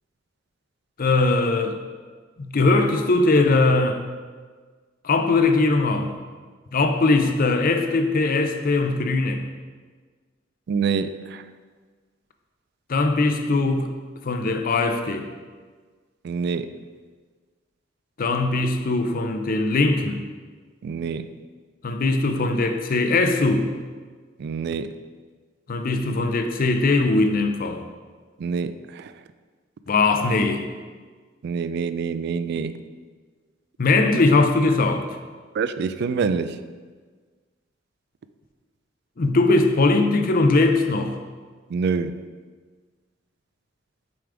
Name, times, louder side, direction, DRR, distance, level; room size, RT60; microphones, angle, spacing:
voice 1, 1.0-1.8 2.4-4.0 5.0-6.1 6.7-9.4 12.9-13.9 14.2-15.3 18.2-20.2 21.8-23.7 25.7-27.8 29.9-30.7 33.8-35.1 39.2-41.2, left 3 dB, 50° left, 6 dB, 0.5 m, -20 dB
voice 2, 10.7-11.4 16.2-16.8 20.8-21.3 24.4-24.9 28.4-29.1 31.4-32.8 35.5-36.6 41.7-42.2, right 5 dB, 60° right, 12 dB, 0.3 m, -26 dB
7.0 x 5.0 x 3.4 m, 1.5 s
head